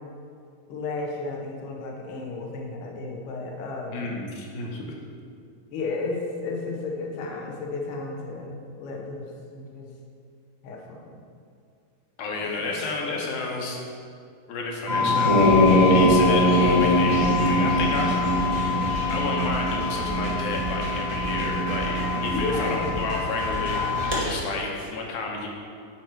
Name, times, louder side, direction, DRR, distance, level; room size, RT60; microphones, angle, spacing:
voice 1, 0.7-4.1 5.7-9.2 9.5-9.9 10.6-11.2 12.4-12.6 22.3-23.0, left 3 dB, 85° left, 0 dB, 1.2 m, -33 dB
voice 2, 3.9-4.8 12.2-13.8 14.5-15.3 15.6-18.2 19.1-23.9 24.1-25.5, left 3 dB, 70° left, 0 dB, 2.2 m, -31 dB
vocal drone pure, 14.9-24.2, left 1 dB, 30° right, 0.6 m, -22 dB
sound 1, 15.4-24.5, right 2 dB, 75° right, 3.4 m, -35 dB
10.5 x 4.5 x 4.5 m, 2.3 s
omnidirectional pair, 4.0 m